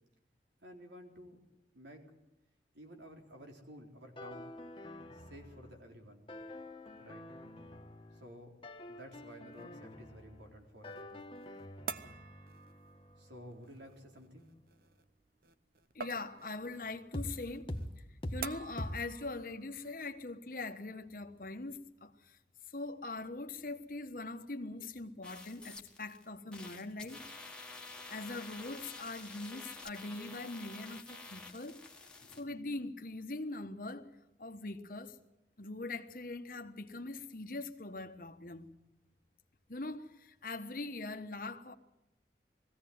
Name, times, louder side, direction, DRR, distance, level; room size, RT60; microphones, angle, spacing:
voice 1, 0.6-1.4 1.7-2.0 2.7-4.5 5.1-6.3 7.0-7.2 8.1-8.6 8.9-11.4 13.2-14.5, equal, 85° right, 4.0 m, -52 dB
sound 1, 4.2-5.9 6.3-8.4 8.6-10.6 10.8-14.5 17.1-17.3 17.7-17.9 18.2-18.4 18.8-19.0, left 1 dB, 30° left, 1.4 m, -46 dB
sound 2, 9.5-20.4, right 6 dB, 50° right, 0.8 m, -49 dB
voice 2, 15.9-17.7 18.3-22.4 22.7-27.2 28.1-34.1 34.4-35.2 35.6-38.7 39.7-41.7, left 2 dB, 50° left, 1.3 m, -42 dB
sound 3, 25.2-26.2 26.5-32.4, left 3 dB, 5° left, 1.6 m, -49 dB
21.5 x 16.0 x 9.5 m
head